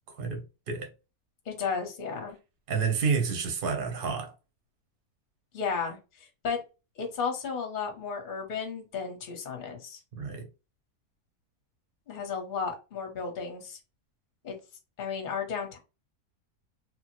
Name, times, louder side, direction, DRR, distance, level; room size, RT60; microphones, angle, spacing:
voice 1, 0.1-0.9 2.7-4.3 10.2-10.5, right 5 dB, 45° right, 0.8 m, -30 dB
voice 2, 1.5-2.4 5.5-6.0 6.4-6.6 7.0-10.0 12.1-13.8 14.4-14.5 15.0-15.8, left 5 dB, 40° left, 0.8 m, -33 dB
3.1 x 2.1 x 3.0 m
omnidirectional pair, 1.6 m